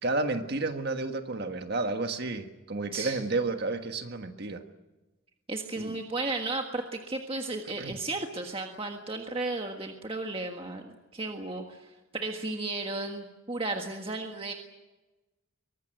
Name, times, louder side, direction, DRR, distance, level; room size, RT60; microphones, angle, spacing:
voice 1, 0.0-4.6 5.8-6.0 7.8-8.0, right 3 dB, 50° right, 6 dB, 1.5 m, -31 dB
voice 2, 5.5-14.5, right 2 dB, 25° right, 3 dB, 1.6 m, -34 dB
23.5 x 19.0 x 9.1 m, 1.1 s
head